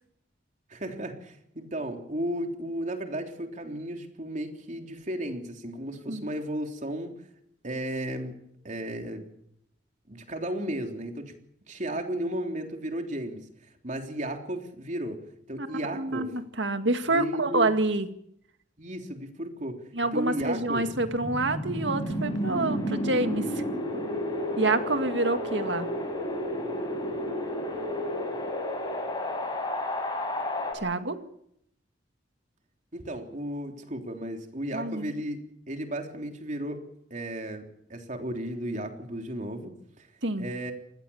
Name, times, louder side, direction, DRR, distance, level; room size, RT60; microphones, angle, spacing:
voice 1, 0.7-7.2 7.6-8.3 8.6-9.3 10.1-11.3 11.7-13.5 13.8-15.2 15.5-16.3 17.1-17.7 18.8-19.8 20.1-20.9 23.5-23.7 32.9-35.4 35.7-36.8 37.1-39.7 40.0-40.1 40.4-40.7, right 1 dB, 40° right, 4 dB, 3.5 m, -34 dB
voice 2, 15.6-18.1 19.9-23.6 24.6-25.9 30.7-31.2 34.7-35.1 40.2-40.5, right 2 dB, 70° right, 8 dB, 2.1 m, -27 dB
Wind, 20.5-30.7, equal, 25° left, 7.3 m, -31 dB
26.0 x 20.0 x 7.2 m, 0.74 s
head